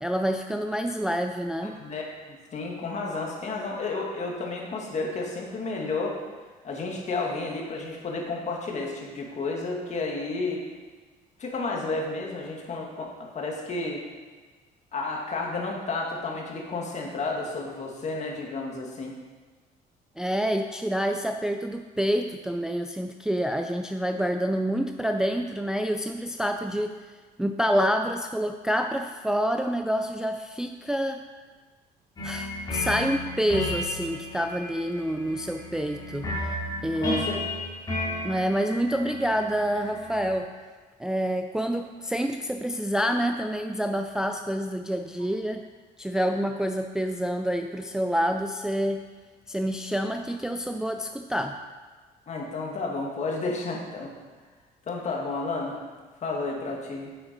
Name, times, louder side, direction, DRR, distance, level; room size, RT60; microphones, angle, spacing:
voice 1, 0.0-1.8 20.2-27.0 27.4-31.2 32.2-36.6 36.8-37.2 38.2-40.5 41.0-45.6 46.0-49.0 49.5-51.6, equal, 5° right, 5 dB, 0.4 m, -27 dB
voice 2, 1.6-6.2 6.6-10.6 11.4-14.0 14.9-19.2 37.0-37.7 52.3-54.1 54.9-55.8 56.2-57.1, left 3 dB, 45° left, -1 dB, 2.1 m, -32 dB
sound 1, 32.2-40.4, left 1 dB, 25° left, 2.7 m, -33 dB
9.2 x 7.9 x 4.5 m, 1.4 s
cardioid pair, 110°, 17 cm